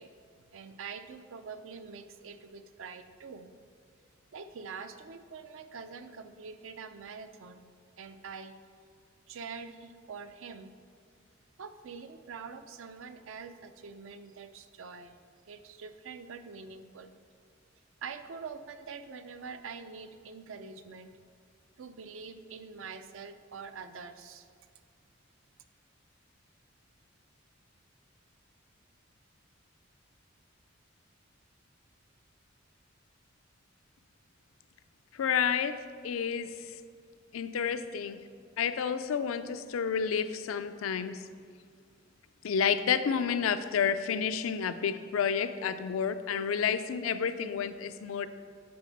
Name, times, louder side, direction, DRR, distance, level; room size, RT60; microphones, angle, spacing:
voice 1, 0.0-3.5 4.3-7.6 8.0-8.6 9.3-10.7 11.6-15.2 15.5-17.1 18.0-21.1 21.8-24.5, right 5 dB, 70° right, 9 dB, 0.5 m, -45 dB
voice 2, 35.1-36.7 37.3-38.2 38.6-41.2 42.4-48.3, left 7 dB, 85° left, 11 dB, 0.4 m, -30 dB
9.5 x 4.2 x 5.2 m, 2.1 s
head